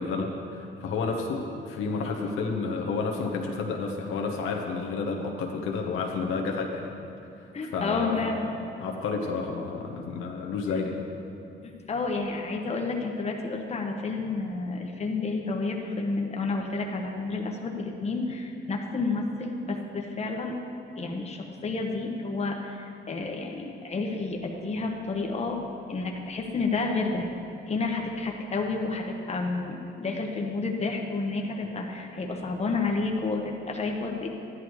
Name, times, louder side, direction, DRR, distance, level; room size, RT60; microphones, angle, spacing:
voice 1, 0.0-6.9 7.6-8.3 8.8-11.0, left 4 dB, 85° left, 0 dB, 1.2 m, -30 dB
voice 2, 7.5-8.5 11.6-20.5 21.0-25.6 25.9-27.3 27.7-34.3, left 3 dB, 35° left, 1 dB, 1.2 m, -30 dB
13.0 x 11.0 x 3.2 m, 2.6 s
cardioid pair, 90°, 20 cm